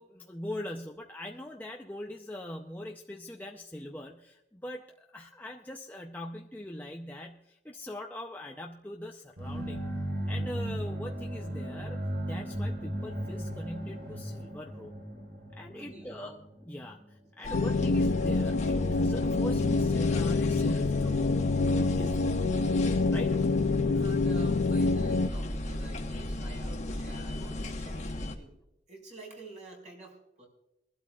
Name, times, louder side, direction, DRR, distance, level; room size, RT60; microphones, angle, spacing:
voice 1, 0.0-9.9 10.3-14.9 15.5-22.4 23.1-23.5, left 1 dB, 10° left, 1 dB, 0.6 m, -41 dB
sound 1, 9.4-17.1, right 1 dB, 75° right, 4.0 m, -36 dB
voice 2, 15.7-16.4 17.4-17.6 23.9-28.6 28.9-30.5, right 2 dB, 40° right, 0 dB, 4.7 m, -49 dB
sound 2, 17.4-28.3, left 1 dB, 40° left, 1.2 m, -35 dB
sound 3, 17.5-25.3, left 3 dB, 85° left, 0.6 m, -27 dB
22.5 x 12.5 x 2.4 m, 0.89 s
head